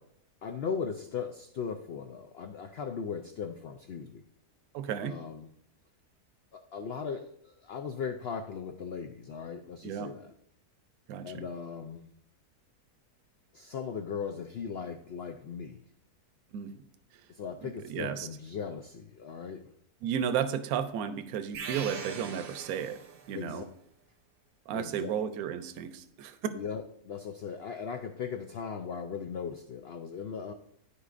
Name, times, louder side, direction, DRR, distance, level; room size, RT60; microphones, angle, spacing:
voice 1, 0.4-4.2 5.0-5.5 6.5-10.3 11.2-12.0 13.5-15.8 17.3-19.7 23.3-23.6 24.7-25.1 26.5-30.5, left 6 dB, 85° left, 6 dB, 0.5 m, -38 dB
voice 2, 4.7-5.1 9.8-10.1 11.1-11.4 16.5-16.8 17.6-18.3 20.0-23.0 23.3-23.6 24.7-26.5, right 8 dB, 70° right, 11 dB, 1.0 m, -33 dB
sound 1, 21.5-23.4, right 7 dB, 90° right, 1.3 m, -41 dB
13.0 x 4.7 x 2.5 m, 0.71 s
omnidirectional pair, 1.7 m